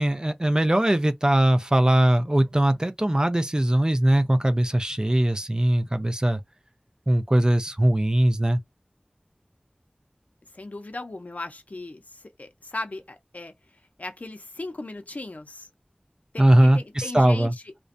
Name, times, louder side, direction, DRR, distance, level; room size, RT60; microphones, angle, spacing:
voice 1, 0.0-6.4 7.1-8.6 16.4-17.5, right 1 dB, 25° right, 0.5 m, -20 dB
voice 2, 10.5-13.5 14.0-15.7 16.3-17.8, left 2 dB, 65° left, 0.5 m, -37 dB
2.5 x 2.1 x 2.5 m
wide cardioid pair, 45°, 3 cm